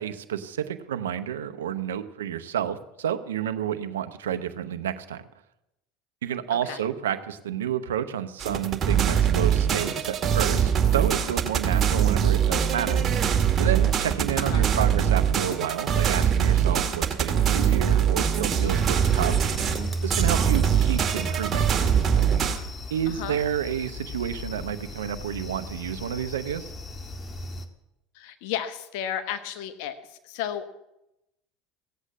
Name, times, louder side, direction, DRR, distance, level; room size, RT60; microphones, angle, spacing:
voice 1, 0.0-5.2 6.2-13.1 13.6-19.4 20.0-21.6 22.9-26.7, right 10 dB, 85° right, 9 dB, 0.9 m, -30 dB
sound 1, 8.4-22.6, right 8 dB, 40° right, 2.2 m, -22 dB
voice 2, 14.4-14.7 23.2-23.4 28.1-30.0 30.2-30.7, left 10 dB, 70° left, 10 dB, 1.2 m, -33 dB
sound 2, 18.6-27.7, equal, 25° left, 1.6 m, -34 dB
16.0 x 8.2 x 7.5 m, 0.89 s
hypercardioid pair, 85°, 0 cm